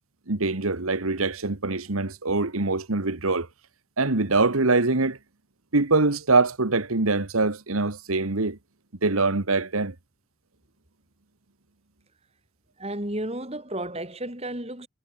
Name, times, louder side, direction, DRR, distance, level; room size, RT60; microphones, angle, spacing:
voice 1, 0.3-3.5 4.0-5.2 5.7-8.6 9.0-9.9, right 3 dB, 90° right, 1.7 m, -23 dB
voice 2, 12.8-14.9, right 1 dB, 30° right, 5.2 m, -32 dB
head